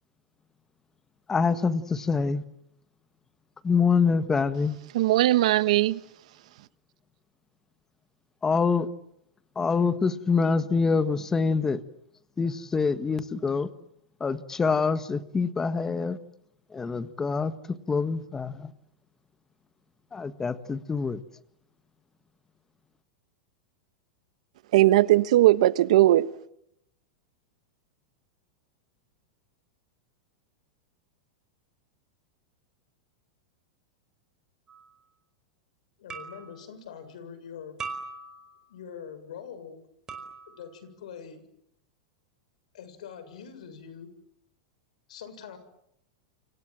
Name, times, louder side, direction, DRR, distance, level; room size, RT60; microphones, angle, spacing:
voice 1, 1.3-2.4 3.6-4.8 8.4-8.9 9.5-11.8 12.4-13.7 14.2-16.2 16.7-18.7 20.1-21.2, left 5 dB, 10° left, 1.5 m, -25 dB
voice 2, 4.9-6.0 24.7-26.3, right 15 dB, 70° right, 1.3 m, -19 dB
sound 1, 34.7-34.9 36.1-36.6 37.8-38.7 40.1-40.7, right 4 dB, 15° right, 4.9 m, -40 dB
voice 3, 36.0-37.8 38.7-39.8 40.5-41.4 42.7-44.1 45.1-45.6, left 7 dB, 80° left, 7.2 m, -43 dB
29.5 x 26.0 x 7.6 m
supercardioid pair, 155°, 4 cm